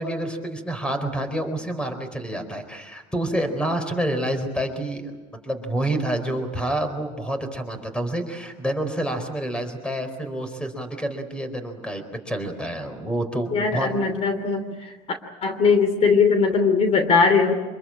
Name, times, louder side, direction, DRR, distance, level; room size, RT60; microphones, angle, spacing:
voice 1, 0.0-5.1 5.4-13.9, right 1 dB, 5° left, 8 dB, 4.4 m, -28 dB
voice 2, 13.5-14.9 15.4-17.5, left 5 dB, 45° left, 8 dB, 2.9 m, -20 dB
26.0 x 22.5 x 8.9 m, 1.2 s
cardioid pair, 120°, 15 cm